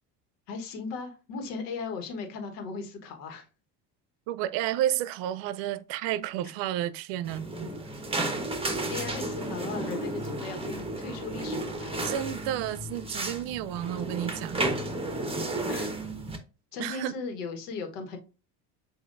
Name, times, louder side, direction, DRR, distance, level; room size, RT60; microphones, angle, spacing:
voice 1, 0.5-3.5 8.9-12.1 15.7-15.9 16.7-18.2, left 4 dB, 85° left, 1.4 m, -37 dB
voice 2, 4.3-7.5 12.0-14.7 16.8-17.1, right 12 dB, 70° right, 0.6 m, -31 dB
sound 1, 7.2-16.4, right 2 dB, 10° right, 1.1 m, -33 dB
7.4 x 2.7 x 2.5 m
supercardioid pair, 85°, 47 cm